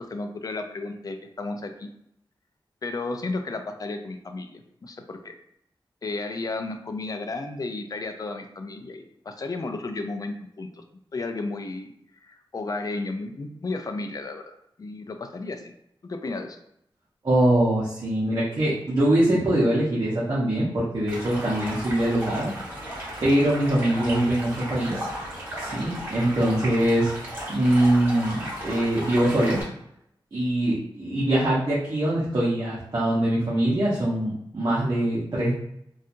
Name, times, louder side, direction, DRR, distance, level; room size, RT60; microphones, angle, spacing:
voice 1, 0.0-1.9 2.8-5.3 6.0-10.8 11.1-11.9 12.2-15.7 16.0-16.6, left 3 dB, 45° left, 5 dB, 0.3 m, -33 dB
voice 2, 17.2-22.5 23.2-25.1 25.6-27.1 27.5-29.6 30.3-35.6, right 1 dB, 45° right, -7 dB, 0.7 m, -23 dB
Stream, 21.1-29.6, right 1 dB, 25° right, 1.5 m, -35 dB
2.8 x 2.3 x 2.5 m, 0.75 s
wide cardioid pair, 105°, 9 cm